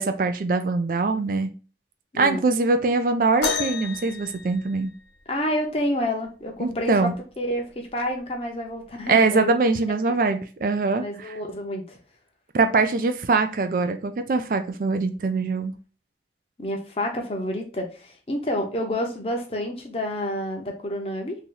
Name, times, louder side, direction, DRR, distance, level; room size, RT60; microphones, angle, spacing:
voice 1, 0.0-1.5 2.2-4.9 6.6-7.1 9.1-11.3 12.5-15.7, right 3 dB, 50° right, 8 dB, 0.4 m, -23 dB
sound 1, 3.4-5.3 7.0-7.1 7.9-8.1 9.0-9.1, left 5 dB, 70° left, 0.7 m, -30 dB
voice 2, 5.3-7.1 7.4-9.6 10.1-10.2 11.0-12.0 16.6-21.4, equal, 35° left, 2 dB, 0.7 m, -29 dB
2.9 x 2.8 x 3.7 m, 0.36 s
head